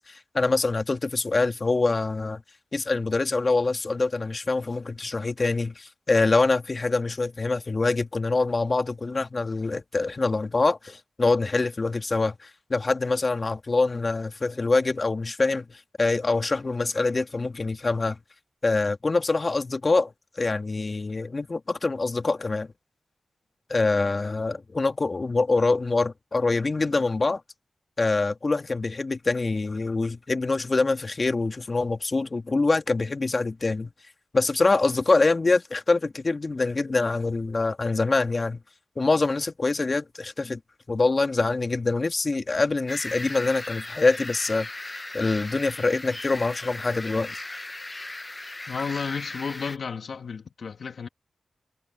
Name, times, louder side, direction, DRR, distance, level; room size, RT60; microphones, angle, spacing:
voice 1, 0.0-2.4 2.7-18.2 18.6-22.7 23.7-27.4 28.0-33.9 34.3-38.6 39.0-40.6 40.9-47.3, left 3 dB, 45° left, 1.9 m, -25 dB
sound 1, 42.9-49.8, left 2 dB, 30° left, 0.8 m, -37 dB
voice 2, 48.7-51.1, left 5 dB, 75° left, 2.4 m, -32 dB
cardioid pair, 45°, 0 cm